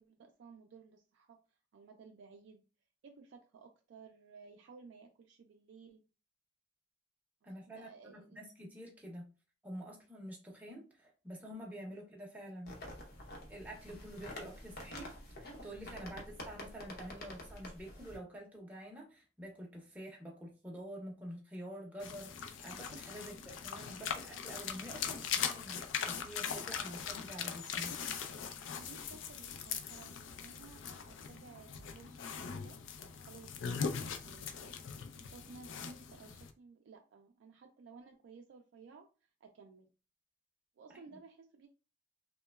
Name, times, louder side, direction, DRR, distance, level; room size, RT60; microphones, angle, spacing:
voice 1, 0.0-2.6 3.0-6.1 7.7-8.4 16.1-16.2 23.2-23.4 28.7-34.8 35.1-39.9 40.8-41.7, right 4 dB, 70° right, 0.3 m, -56 dB
voice 2, 7.4-9.3 9.6-12.8 13.5-15.1 15.4-28.0 40.9-41.0, equal, 10° right, 0.5 m, -48 dB
sound 1, 12.7-18.2, left 1 dB, 55° left, 0.7 m, -48 dB
sound 2, 22.0-36.5, left 7 dB, 85° left, 0.4 m, -41 dB
2.9 x 2.1 x 2.2 m
head